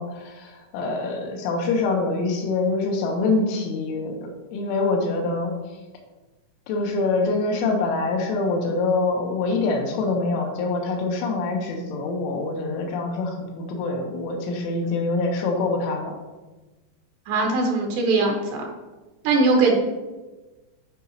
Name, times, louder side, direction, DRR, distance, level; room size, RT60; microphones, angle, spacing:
voice 1, 0.0-5.6 6.7-16.1, left 3 dB, 80° left, 1 dB, 3.5 m, -25 dB
voice 2, 17.3-18.6 19.2-19.7, right 3 dB, 75° right, 0 dB, 2.9 m, -20 dB
12.5 x 5.3 x 2.9 m, 1.2 s
omnidirectional pair, 5.6 m